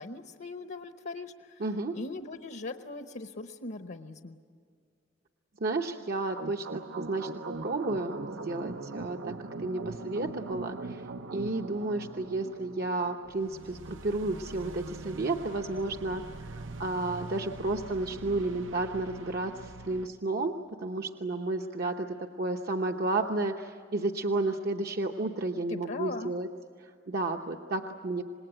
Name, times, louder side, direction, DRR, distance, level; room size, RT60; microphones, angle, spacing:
voice 1, 0.0-1.6 1.9-4.4 25.7-26.3, left 3 dB, 60° left, 7 dB, 0.9 m, -40 dB
voice 2, 1.6-2.0 5.6-26.5 26.8-28.2, right 2 dB, 55° right, 3 dB, 0.9 m, -32 dB
sound 1, 6.3-20.1, right 3 dB, 85° right, 0.9 m, -42 dB
26.5 x 20.0 x 9.0 m, 2.3 s
head